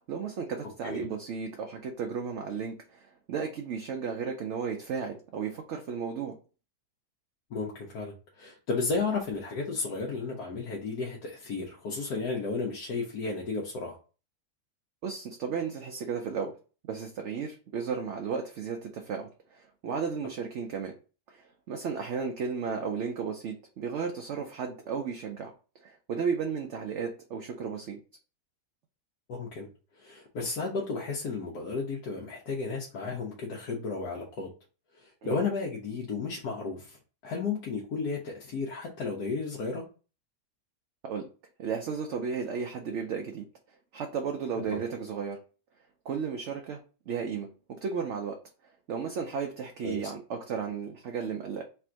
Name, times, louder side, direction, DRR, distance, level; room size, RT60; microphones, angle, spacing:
voice 1, 0.1-6.4 15.0-16.5 16.9-20.9 21.3-25.5 25.8-28.0 35.2-35.3 41.0-41.3 41.6-43.5 43.9-45.4 46.0-48.4 48.9-51.6, right 6 dB, 65° right, 0.7 m, -34 dB
voice 2, 7.5-14.0 29.3-29.7 30.0-34.5 35.0-37.0 37.2-39.8 44.7-44.8 49.8-50.0, left 4 dB, 85° left, 1.4 m, -33 dB
3.4 x 2.5 x 4.4 m
omnidirectional pair, 1.6 m